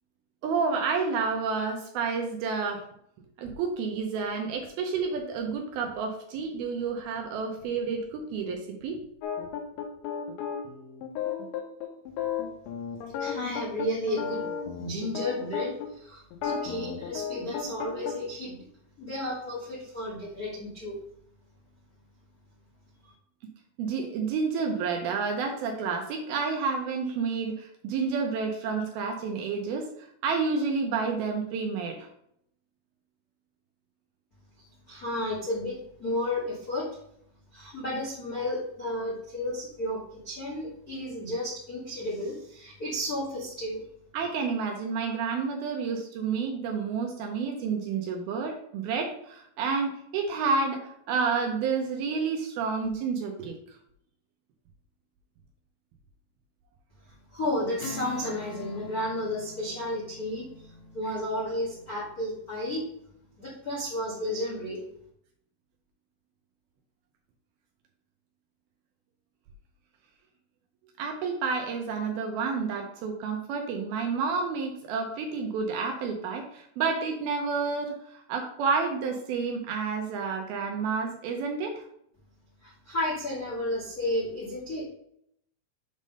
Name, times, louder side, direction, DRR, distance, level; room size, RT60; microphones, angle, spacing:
voice 1, 0.4-2.8 3.4-9.0 23.8-32.1 44.1-53.8 71.0-81.9, right 5 dB, 75° right, 2 dB, 2.3 m, -30 dB
sound 1, 9.2-15.9 16.3-18.1, left 7 dB, 85° left, 3.3 m, -33 dB
voice 2, 13.2-14.4 14.8-18.7 19.0-21.0 23.0-23.1 34.6-36.9 37.5-43.8 57.3-60.7 60.9-62.8 63.4-64.8 82.6-84.8, left 1 dB, 55° left, -6 dB, 1.0 m, -32 dB
Strum, 57.8-62.7, left 2 dB, 70° left, 2.8 m, -44 dB
7.3 x 3.7 x 5.2 m, 0.72 s
omnidirectional pair, 4.9 m